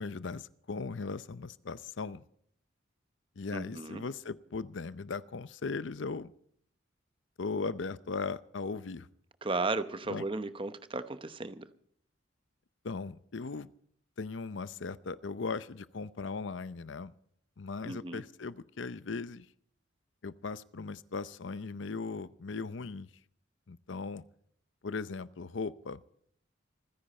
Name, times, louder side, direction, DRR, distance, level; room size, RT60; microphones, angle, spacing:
voice 1, 0.0-2.2 3.4-6.3 7.4-9.1 10.1-10.3 12.8-13.7 14.2-17.1 17.6-19.5 20.2-23.1 23.7-24.2 24.8-26.0, left 4 dB, 70° left, 16 dB, 0.6 m, -38 dB
voice 2, 3.5-4.0 9.4-11.7 17.8-18.2, right 3 dB, 25° right, 11 dB, 0.9 m, -35 dB
27.0 x 10.5 x 4.3 m, 0.65 s
head